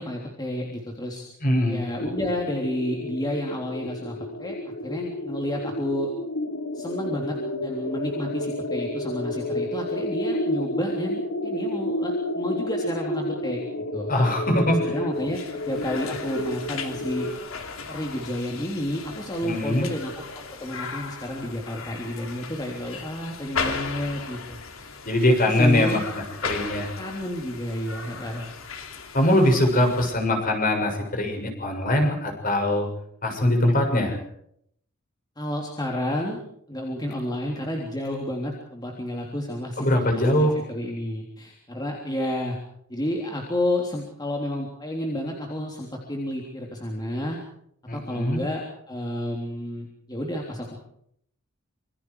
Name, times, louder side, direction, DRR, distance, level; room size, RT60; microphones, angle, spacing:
voice 1, 0.0-1.3 1.7-4.6 4.8-6.1 6.7-13.6 13.9-14.1 14.7-17.3 17.9-20.1 20.6-25.0 25.4-26.0 27.0-28.5 35.4-36.4 36.7-42.6 42.9-47.4 47.9-48.6 48.9-50.8, left 1 dB, 20° left, -1 dB, 3.5 m, -30 dB
voice 2, 1.4-1.8 14.1-14.9 19.4-19.9 25.0-26.0 26.4-26.9 29.1-32.9 33.2-34.2 39.8-40.5 47.9-48.4, left 1 dB, 40° left, 3 dB, 7.1 m, -22 dB
sound 1, 2.0-17.3, left 1 dB, 85° left, 4.9 m, -31 dB
sound 2, 15.2-30.1, left 5 dB, 70° left, 3.0 m, -37 dB
27.0 x 25.0 x 4.9 m, 0.70 s
head